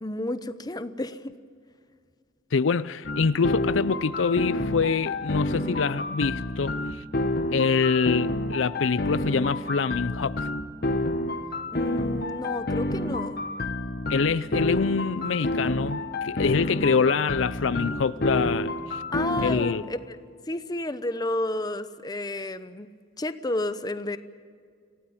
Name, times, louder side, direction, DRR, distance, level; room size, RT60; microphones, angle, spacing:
voice 1, 0.0-1.3 11.7-13.4 19.1-20.2 20.5-22.9 23.2-24.2, left 1 dB, 20° left, 0.9 m, -31 dB
voice 2, 2.5-7.0 7.5-10.5 14.1-19.0 19.4-19.8, left 5 dB, 85° left, 0.5 m, -25 dB
sound 1, 3.0-19.7, left 1 dB, 55° left, 1.3 m, -29 dB
27.0 x 17.0 x 8.7 m
head